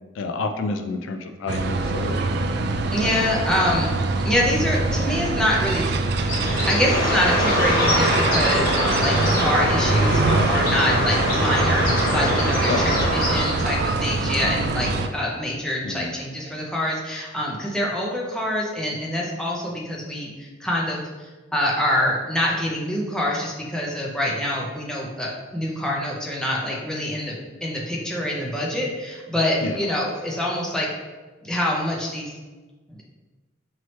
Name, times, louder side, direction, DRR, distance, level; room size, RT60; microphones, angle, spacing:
voice 1, 0.2-2.2 12.7-13.0 15.8-16.2 29.6-29.7, left 3 dB, 85° left, 6 dB, 0.4 m, -29 dB
sound 1, 1.5-15.1, right 3 dB, 55° right, 0.3 m, -24 dB
voice 2, 2.9-3.9 4.2-30.9 31.4-32.3 32.9-33.0, left 1 dB, 5° left, -4 dB, 0.6 m, -25 dB
Bird, 6.2-13.9, left 1 dB, 50° left, 1.1 m, -23 dB
4.6 x 2.9 x 3.1 m, 1.3 s
head